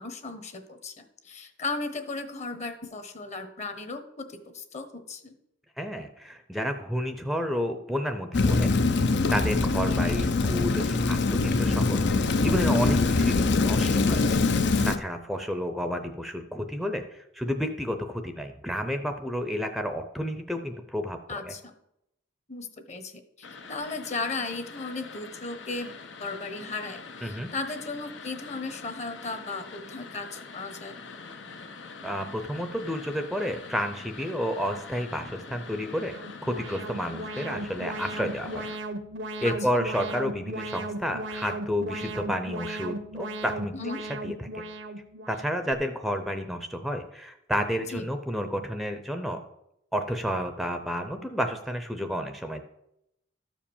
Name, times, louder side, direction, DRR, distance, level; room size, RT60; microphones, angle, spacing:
voice 1, 0.0-5.3 9.9-10.0 21.3-21.7 22.5-23.1 23.4-25.9 26.2-31.0 39.4-39.5 43.7-44.0 47.9-48.0, left 3 dB, 40° left, 9 dB, 1.1 m, -36 dB
voice 2, 5.8-8.7 9.3-14.2 14.8-21.2 21.4-21.5 27.2-27.5 32.0-36.1 36.4-38.6 39.4-43.7 44.2-44.6 45.3-49.4 49.9-52.6, equal, ahead, 6 dB, 0.6 m, -31 dB
Rain, 8.3-15.0, left 3 dB, 65° left, 0.7 m, -23 dB
sound 1, 23.4-38.8, left 4 dB, 85° left, 1.0 m, -44 dB
Alarm, 35.9-45.7, right 1 dB, 80° right, 0.9 m, -37 dB
13.0 x 5.0 x 7.1 m, 0.82 s
head